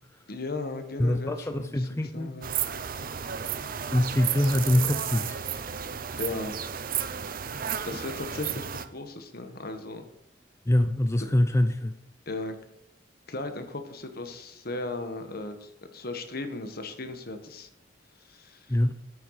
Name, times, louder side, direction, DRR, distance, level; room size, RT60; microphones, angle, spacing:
voice 1, 0.3-2.5 6.2-6.6 7.8-10.1 12.3-12.6 13.3-17.7 18.3-18.7, left 2 dB, 55° left, 7 dB, 1.6 m, -36 dB
voice 2, 1.0-2.3 3.9-5.4 10.7-11.9 18.7-18.9, left 1 dB, 15° left, 8 dB, 0.6 m, -24 dB
sound 1, 2.4-8.9, right 8 dB, 50° right, 0.8 m, -33 dB
9.6 x 9.3 x 4.9 m, 0.78 s
head